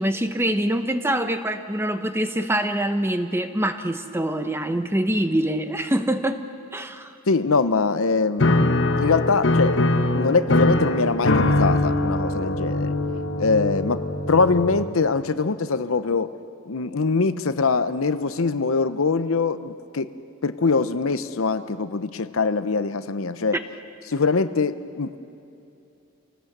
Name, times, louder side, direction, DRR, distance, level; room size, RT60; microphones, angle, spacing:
voice 1, 0.0-6.4 6.7-7.1, right 1 dB, 10° right, 8 dB, 0.9 m, -24 dB
voice 2, 7.3-9.9 10.1-12.9 13.4-16.3 16.7-20.2 20.4-23.6 24.1-25.2, left 4 dB, 75° left, 12 dB, 0.8 m, -23 dB
Piano, 8.4-15.2, left 2 dB, 60° left, 1.3 m, -22 dB
27.0 x 18.5 x 8.0 m, 2.8 s
head